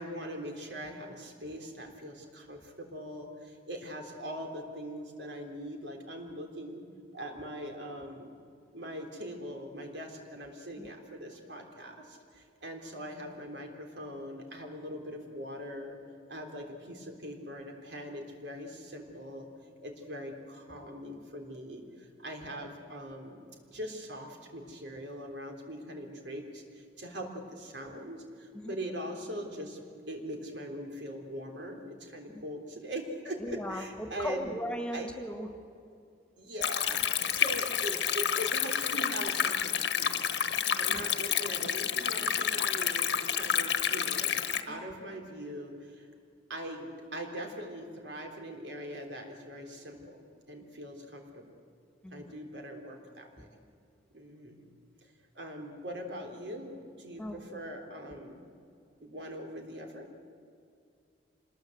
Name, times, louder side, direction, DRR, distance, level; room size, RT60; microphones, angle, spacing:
voice 1, 0.0-6.8 7.1-8.3 8.7-16.0 16.3-19.5 19.8-34.6 34.9-35.1 36.4-40.4 40.7-44.4 44.7-46.1 46.5-51.4 52.1-53.5 54.1-54.7 55.3-58.4 59.0-60.1, equal, 85° right, 2 dB, 3.7 m, -41 dB
voice 2, 33.4-35.5 40.9-41.0 44.7-44.8 52.0-52.3 57.2-57.6, equal, 5° left, 4 dB, 1.8 m, -38 dB
Stream, 36.6-44.6, left 8 dB, 80° left, 1.3 m, -29 dB
26.0 x 21.0 x 8.0 m, 2.4 s
head